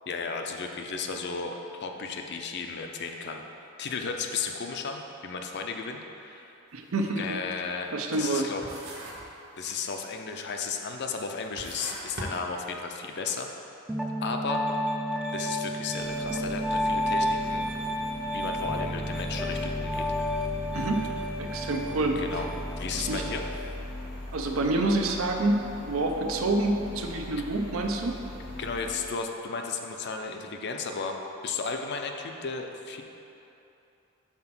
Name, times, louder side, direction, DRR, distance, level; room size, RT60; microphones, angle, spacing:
voice 1, 0.1-3.4 3.8-6.6 7.2-8.6 9.6-13.5 14.2-14.7 15.3-17.7 18.2-20.0 22.2-22.5 22.8-23.5 28.6-33.0, left 5 dB, 50° left, 3 dB, 0.5 m, -34 dB
sound 1, 6.7-6.9 7.3-8.4 8.6-9.4 9.7-10.2 10.8-10.9 11.4-13.1, right 1 dB, 50° right, 1.1 m, -40 dB
voice 2, 6.7-7.4 7.9-8.5 20.7-21.0 21.4-22.2 22.9-23.3 24.3-28.2, right 2 dB, 70° right, 3 dB, 0.6 m, -27 dB
Piano, 13.9-23.6, equal, 5° right, 0.4 m, -31 dB
sound 2, 16.0-28.9, left 1 dB, 90° left, 1.3 m, -40 dB
5.8 x 4.3 x 5.9 m, 2.9 s
head